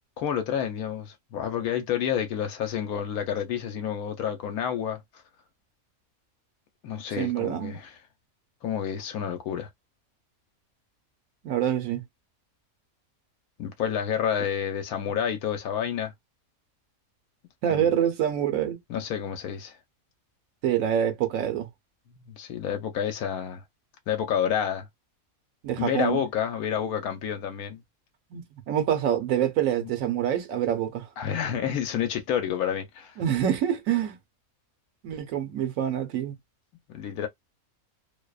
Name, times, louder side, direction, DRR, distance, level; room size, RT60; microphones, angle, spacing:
voice 1, 0.2-5.0 6.8-8.0 8.6-9.7 13.6-16.1 17.7-17.9 18.9-19.7 22.2-23.6 24.1-24.9 25.8-27.8 29.8-29.9 31.2-33.2 36.9-37.3, left 9 dB, 85° left, 1.1 m, -29 dB
voice 2, 7.2-7.8 11.4-12.0 17.6-18.8 20.6-21.7 25.6-26.2 28.3-31.1 33.2-34.2 35.0-36.4, right 10 dB, 75° right, 1.0 m, -26 dB
2.7 x 2.0 x 2.3 m
omnidirectional pair, 1.5 m